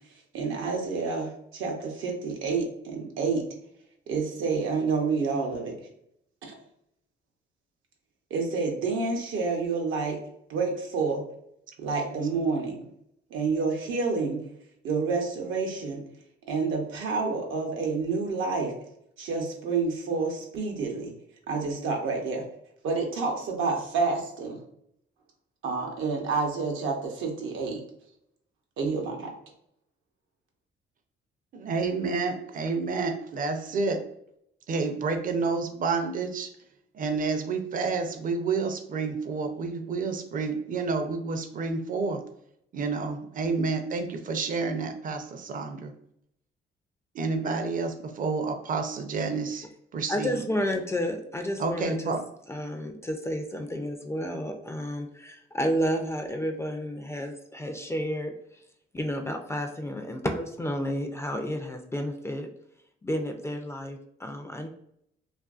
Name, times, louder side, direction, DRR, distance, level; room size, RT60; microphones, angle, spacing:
voice 1, 0.3-3.4 4.1-5.8 6.4-6.5 8.3-10.2 10.5-11.2 11.8-12.9 13.3-14.4 14.8-16.0 16.5-18.7 19.2-21.1 21.5-22.4 22.8-24.6 25.6-27.8 28.8-29.3, right 4 dB, 80° right, 1 dB, 0.7 m, -29 dB
voice 2, 31.5-34.0 34.7-36.5 36.9-42.2 42.7-45.9 47.1-49.6 49.9-50.5 51.6-52.2, right 4 dB, 45° right, 5 dB, 0.5 m, -29 dB
voice 3, 50.1-52.1 52.5-58.3 58.9-62.5 63.0-64.7, equal, 15° left, 5 dB, 0.3 m, -31 dB
2.5 x 2.5 x 2.3 m, 0.72 s
cardioid pair, 90°, 20 cm